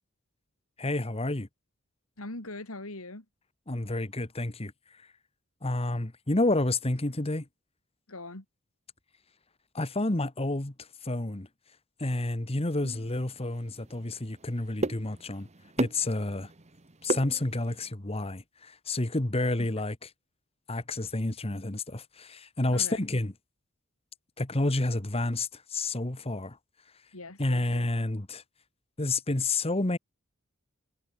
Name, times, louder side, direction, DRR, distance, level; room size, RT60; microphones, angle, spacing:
voice 1, 0.8-1.5 3.7-4.7 5.6-7.4 9.7-10.7 11.0-11.5 12.0-15.5 15.8-16.5 17.0-19.9 20.7-23.3 24.4-26.6 27.4-28.4 29.0-30.0, left 2 dB, 30° left, 1.4 m, -29 dB
voice 2, 2.2-3.3 8.1-8.5 19.6-19.7 22.7-23.1 27.1-27.9, left 2 dB, 80° left, 3.7 m, -41 dB
sound 1, 12.8-17.9, right 2 dB, 30° right, 1.4 m, -36 dB
head